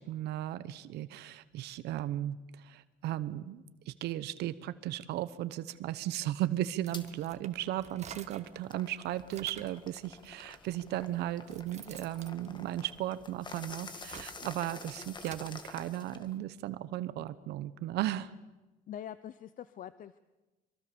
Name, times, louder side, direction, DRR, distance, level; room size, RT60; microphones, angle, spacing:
voice 1, 0.0-18.3, right 13 dB, 80° right, 14 dB, 0.9 m, -36 dB
sound 1, 6.7-8.6 9.0-9.8 10.7-10.8 11.2-13.4 13.8-15.5, right 8 dB, 40° right, 1.4 m, -50 dB
sound 2, 6.9-7.1 7.6-16.4, left 3 dB, 25° left, 2.0 m, -49 dB
voice 2, 18.9-20.2, left 10 dB, 55° left, 15 dB, 0.7 m, -44 dB
24.0 x 23.5 x 6.9 m, 1.1 s
cardioid pair, 110°, 17 cm